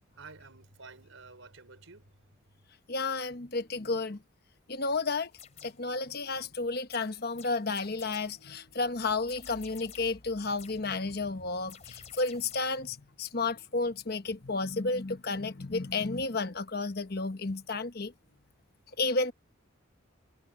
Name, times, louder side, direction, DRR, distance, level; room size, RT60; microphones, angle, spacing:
voice 1, 0.1-2.2, right 4 dB, 75° right, 4.2 m, -51 dB
voice 2, 2.9-4.2 4.7-5.3 5.6-18.1 19.0-19.3, left 3 dB, 50° left, 1.1 m, -32 dB
sound 1, 5.3-5.9 6.9-8.5 9.3-10.2 10.6-10.9 11.7-12.9, left 8 dB, 35° left, 3.6 m, -52 dB
head